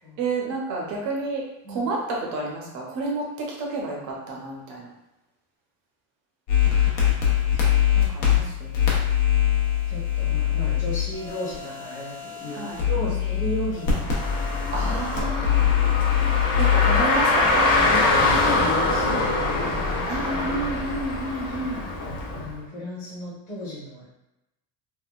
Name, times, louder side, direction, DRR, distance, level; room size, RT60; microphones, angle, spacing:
voice 1, 0.2-1.4 1.7-4.0 4.3-4.9 7.9-8.9 12.5-13.1 13.7-13.8 14.7-17.8 20.0-21.9, right 2 dB, 40° right, -2 dB, 0.7 m, -31 dB
sound 1, 6.5-18.4, left 10 dB, 60° left, 1.0 m, -23 dB
voice 2, 6.6-8.4 9.9-14.1 17.8-20.0 21.5-21.8 22.3-24.0, equal, 15° left, -13 dB, 0.9 m, -35 dB
Car, 13.9-22.5, left 2 dB, 35° left, 0.4 m, -24 dB
3.6 x 2.2 x 2.3 m, 0.94 s
cardioid pair, 165°, 48 cm